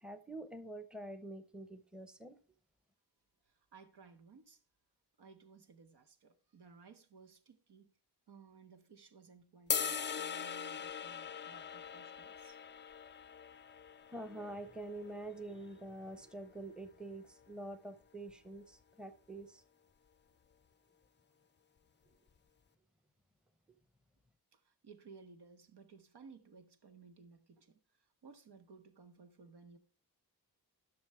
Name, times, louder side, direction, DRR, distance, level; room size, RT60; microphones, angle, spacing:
voice 1, 0.0-2.4 14.1-19.6, right 1 dB, ahead, 0.7 m, -46 dB
voice 2, 3.4-4.6 5.2-7.9 8.3-12.6 24.5-29.8, right 5 dB, 80° right, 1.2 m, -59 dB
sound 1, 9.7-15.9, left 7 dB, 30° left, 0.4 m, -41 dB
11.0 x 6.2 x 3.2 m
wide cardioid pair, 155°, 39 cm